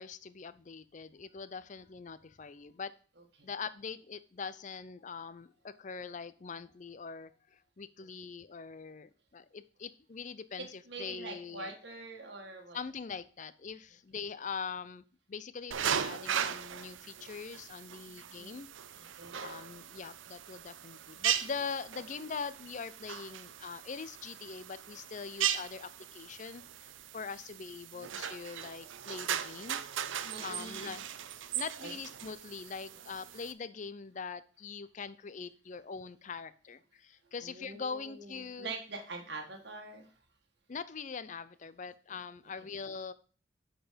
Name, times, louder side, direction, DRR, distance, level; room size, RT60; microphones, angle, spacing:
voice 1, 0.0-2.9 3.4-11.7 12.7-18.7 18.9-19.1 19.3-29.8 30.4-31.1 31.5-38.7 40.7-43.1, left 5 dB, 40° left, 15 dB, 0.5 m, -42 dB
voice 2, 10.6-12.8 18.0-18.6 19.0-19.4 27.9-28.2 30.1-31.0 31.8-31.9 37.4-40.1, right 3 dB, 60° right, 2 dB, 1.5 m, -45 dB
sound 1, 15.7-33.5, right 9 dB, 80° right, 0.5 m, -38 dB
10.0 x 4.5 x 5.0 m, 0.41 s
head